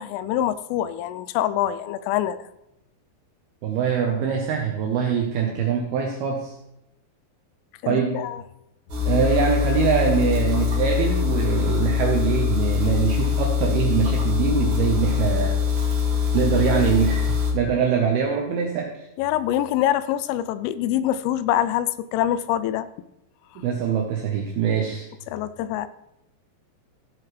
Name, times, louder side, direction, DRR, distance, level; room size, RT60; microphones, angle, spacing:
voice 1, 0.0-2.4 7.8-8.4 19.2-22.9 25.3-25.9, left 12 dB, 85° left, 3.1 m, -25 dB
voice 2, 3.6-6.5 7.9-8.2 9.1-15.6 16.3-18.9 23.6-25.1, right 6 dB, 80° right, 2.3 m, -23 dB
sound 1, 8.9-17.5, left 7 dB, 50° right, 2.6 m, -23 dB
15.5 x 7.7 x 3.2 m
omnidirectional pair, 5.7 m